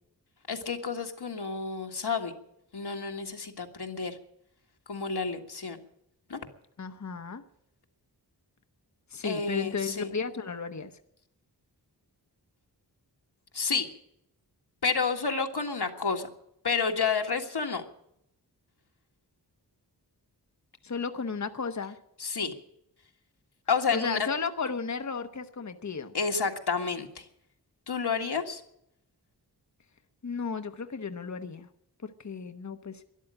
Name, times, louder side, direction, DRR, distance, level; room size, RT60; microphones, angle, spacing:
voice 1, 0.5-2.3 2.7-4.2 4.9-5.8 6.3-6.4 9.2-10.1 13.5-13.9 14.8-16.3 16.6-17.8 22.2-22.5 23.7-24.3 26.1-27.2 27.9-28.6, left 5 dB, 70° left, 3 dB, 1.8 m, -30 dB
voice 2, 6.8-7.4 9.1-10.9 20.8-22.0 23.9-26.1 30.2-31.7 32.0-33.0, left 5 dB, 45° left, 8 dB, 1.1 m, -34 dB
13.0 x 11.0 x 9.9 m, 0.76 s
wide cardioid pair, 80°, 41 cm